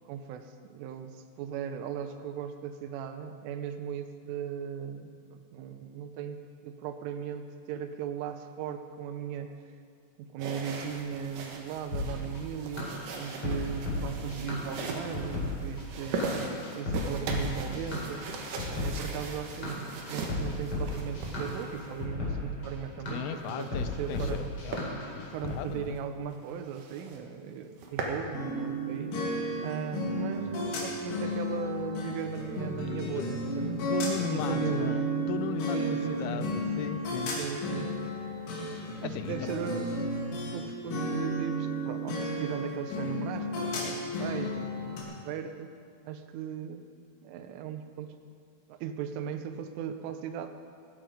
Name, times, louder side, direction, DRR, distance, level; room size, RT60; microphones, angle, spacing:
voice 1, 0.1-9.5 10.2-16.4 16.7-18.3 18.7-24.4 25.2-29.1 29.6-34.9 35.7-36.5 37.4-38.1 39.0-39.9 40.3-45.7 46.0-46.9 47.2-48.2 48.7-50.5, right 8 dB, 85° right, 8 dB, 3.3 m, -38 dB
sound 1, 10.4-22.0 23.3-24.4 24.7-24.9 25.4-25.5 26.0-26.1 26.3-26.4 26.7-27.2 27.6-28.2, right 3 dB, 65° right, 2.1 m, -39 dB
sound 2, 11.9-25.6, left 2 dB, 30° left, 4.5 m, -35 dB
voice 2, 23.1-24.8 25.1-26.0 33.1-33.2 33.8-37.4 39.0-39.6, left 10 dB, 85° left, 11 dB, 2.9 m, -37 dB
sound 3, 28.3-40.6 40.9-45.0, equal, 65° left, 4.3 m, -33 dB
17.0 x 14.0 x 5.1 m, 2.3 s
omnidirectional pair, 5.6 m